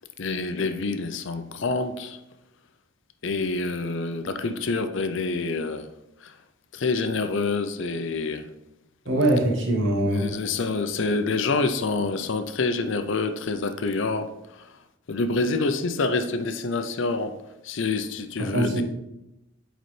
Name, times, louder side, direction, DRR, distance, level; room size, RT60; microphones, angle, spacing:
voice 1, 0.2-2.2 3.2-5.9 6.2-6.4 6.7-8.5 10.1-14.8 15.1-17.3 17.6-18.8, left 3 dB, 60° left, 0.5 m, -27 dB
voice 2, 9.1-10.3 18.4-18.8, right 1 dB, 60° right, 1.3 m, -22 dB
8.4 x 4.0 x 3.2 m
head